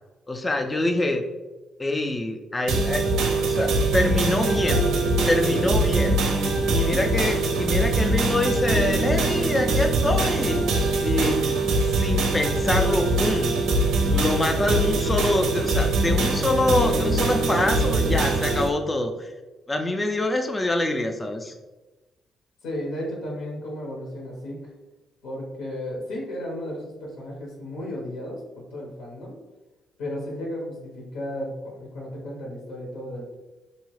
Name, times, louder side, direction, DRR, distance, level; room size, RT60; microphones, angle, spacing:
voice 1, 0.3-1.2 1.8-3.1 3.4-4.8 5.3-6.2 6.7-10.6 11.0-13.6 14.1-19.3 19.7-21.5, left 1 dB, 20° left, 4 dB, 0.3 m, -25 dB
sound 1, 2.7-18.7, right 2 dB, 80° right, 0.5 m, -23 dB
voice 2, 4.5-5.1 5.4-6.0 6.6-7.0 11.2-11.4 22.6-24.7 25.2-29.3 30.0-33.3, left 1 dB, 85° left, -2 dB, 0.8 m, -34 dB
2.8 x 2.3 x 3.1 m, 1.2 s
cardioid pair, 90°, 0 cm